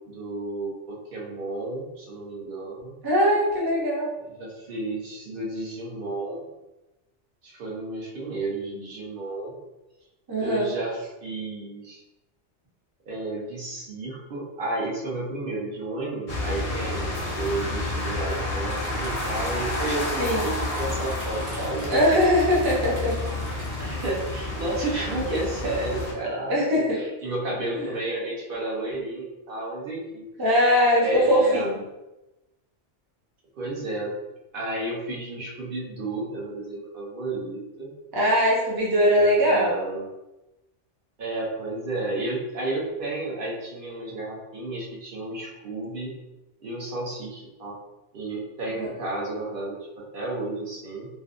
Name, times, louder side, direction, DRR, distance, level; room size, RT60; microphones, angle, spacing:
voice 1, 0.1-3.0 4.4-6.4 7.4-9.5 10.4-12.0 13.1-22.3 23.8-26.6 26.9-30.2 31.0-31.8 33.6-34.1 34.5-37.9 39.0-40.0 41.2-46.1 46.6-47.7 48.1-51.1, right 2 dB, 55° right, -4 dB, 0.7 m, -32 dB
voice 2, 3.0-4.1 10.3-10.7 20.2-20.5 21.9-23.2 26.5-27.0 27.8-27.9 30.4-31.8 38.1-39.7 48.8-48.9, equal, 35° right, -4 dB, 0.3 m, -21 dB
sound 1, 16.3-26.1, left 2 dB, 45° left, 0.5 m, -30 dB
sound 2, 18.6-23.9, right 1 dB, 80° right, 1.1 m, -43 dB
2.6 x 2.1 x 2.4 m, 1.0 s
omnidirectional pair, 1.2 m